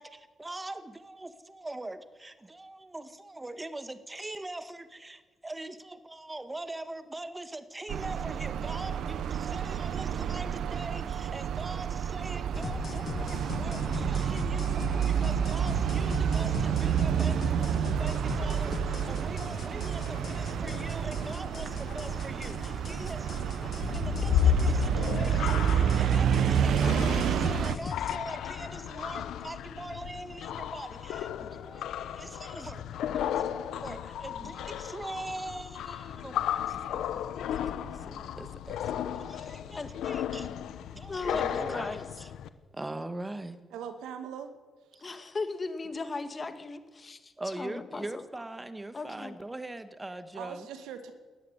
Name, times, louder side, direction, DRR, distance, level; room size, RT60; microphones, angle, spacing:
voice 1, 0.0-17.6 18.0-37.2 38.1-40.5 40.9-42.3 42.7-43.6 44.9-45.0 47.4-50.7, right 2 dB, 15° right, 11 dB, 1.8 m, -42 dB
sound 1, 7.9-27.8, right 9 dB, 70° right, 0.8 m, -29 dB
sound 2, 12.5-28.2, left 6 dB, 50° left, 0.6 m, -39 dB
sound 3, 23.8-42.5, left 9 dB, 80° left, 1.2 m, -33 dB
voice 2, 41.1-42.1 45.0-48.2 48.9-49.4, left 3 dB, 30° left, 9 dB, 2.2 m, -37 dB
voice 3, 43.7-44.5 50.3-51.1, right 8 dB, 85° right, 8 dB, 2.3 m, -40 dB
19.0 x 14.0 x 9.9 m, 1.3 s
cardioid pair, 90°, 0 cm